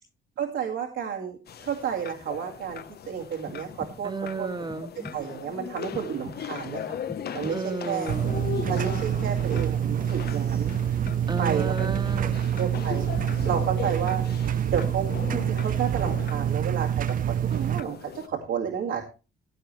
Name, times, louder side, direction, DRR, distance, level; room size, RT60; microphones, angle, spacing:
voice 1, 0.4-4.5 5.1-7.0 7.3-8.1 8.7-10.7 11.4-11.9 12.6-13.1 13.4-14.2 14.7-15.1 15.3-19.0, right 8 dB, 75° right, 0 dB, 2.2 m, -31 dB
sound 1, 1.5-18.3, left 8 dB, 55° left, 0.9 m, -39 dB
sound 2, 3.5-4.3 4.7-5.4 5.9-6.7 7.1-7.9 8.3-9.1 9.5-10.3 10.7-11.5 11.9-12.8 13.2-14.0, left 1 dB, 5° left, 1.7 m, -44 dB
voice 2, 4.0-5.1 7.5-8.5 11.3-12.4, right 3 dB, 20° right, 10 dB, 1.4 m, -33 dB
sound 3, 8.1-17.8, right 9 dB, 45° right, 0.4 m, -26 dB
15.5 x 9.0 x 3.2 m, 0.31 s
cardioid pair, 90°, 20 cm